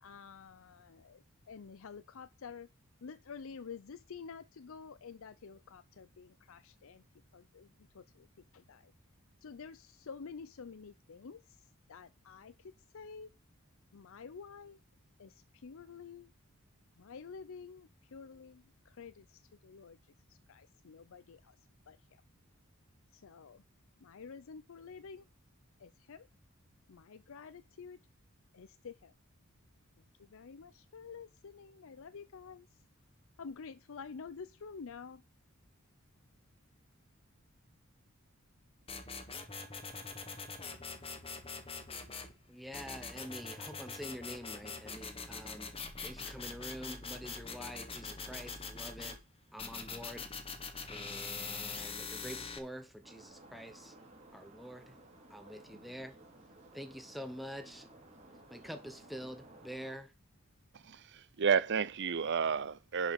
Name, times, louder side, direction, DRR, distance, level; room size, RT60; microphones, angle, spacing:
voice 1, 0.0-2.7 3.0-7.0 7.3-8.3 8.5-8.9 9.4-13.3 13.9-14.8 15.2-16.3 17.0-21.6 21.9-22.2 23.1-23.6 24.0-25.3 25.8-26.3 26.9-28.0 28.5-29.1 30.2-32.8 33.4-35.2, left 5 dB, 65° left, 0.5 m, -50 dB
sound 1, 38.9-42.3 42.7-49.2 49.6-52.6, left 4 dB, 25° left, 1.4 m, -43 dB
voice 2, 42.5-45.8 46.0-49.2 49.5-50.3 50.9-53.9 54.3-55.0 55.3-56.2 56.7-57.9 58.5-60.1, equal, ahead, 0.9 m, -46 dB
sound 2, 53.0-59.9, right 2 dB, 30° right, 3.3 m, -57 dB
voice 3, 60.7-63.1, right 6 dB, 55° right, 0.6 m, -31 dB
11.0 x 5.2 x 5.2 m
head